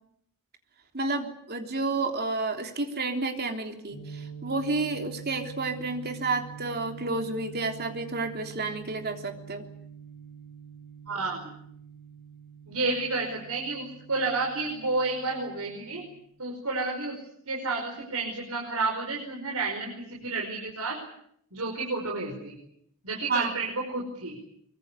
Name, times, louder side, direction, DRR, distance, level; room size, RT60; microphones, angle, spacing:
voice 1, 0.9-9.7 23.3-23.5, right 3 dB, 45° right, 4 dB, 3.4 m, -30 dB
sound 1, 3.9-16.2, right 7 dB, 45° left, 4.6 m, -46 dB
voice 2, 11.1-11.5 12.7-16.0 16.4-17.2 17.5-21.0 21.5-22.6 23.0-24.4, right 3 dB, 90° right, 0 dB, 5.3 m, -31 dB
24.0 x 24.0 x 8.3 m, 0.72 s
head